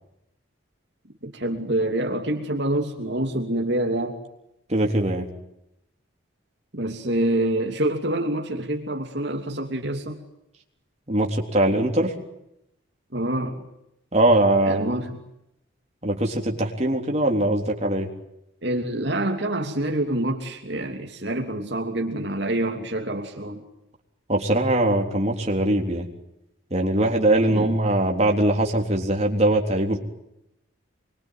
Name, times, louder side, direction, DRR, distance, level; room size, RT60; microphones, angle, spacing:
voice 1, 1.2-4.2 6.7-10.2 13.1-13.6 14.6-15.2 18.6-23.6 27.5-27.8, right 1 dB, 60° right, 2 dB, 2.9 m, -26 dB
voice 2, 4.7-5.3 11.1-12.1 14.1-14.9 16.0-18.1 24.3-26.1 26.7-30.0, right 1 dB, 35° right, 1 dB, 3.7 m, -21 dB
26.0 x 23.5 x 9.3 m, 0.83 s
head